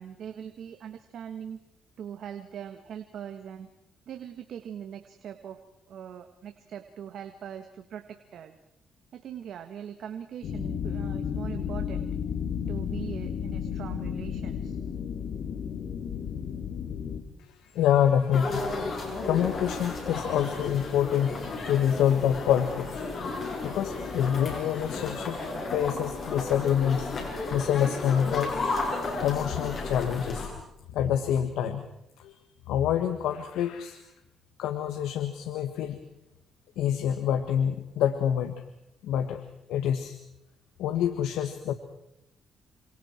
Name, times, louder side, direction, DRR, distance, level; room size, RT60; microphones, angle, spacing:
voice 1, 0.0-1.6 2.0-3.7 4.1-5.6 5.9-8.5 9.1-12.1 12.7-14.8, right 9 dB, 70° right, 7 dB, 1.7 m, -41 dB
sound 1, 10.4-17.2, left 7 dB, 70° left, 2.7 m, -33 dB
voice 2, 17.4-18.8 19.2-25.4 25.7-27.1 27.5-28.5 29.2-30.5 30.9-31.8 32.2-32.3 32.7-34.0 34.6-36.0 36.8-38.5 39.0-39.4 39.7-40.2 40.8-41.7, left 9 dB, 90° left, 9 dB, 1.5 m, -27 dB
sound 2, 18.3-30.5, left 3 dB, 50° left, 7.8 m, -33 dB
28.0 x 26.5 x 4.5 m, 0.82 s
cardioid pair, 90°, 0 cm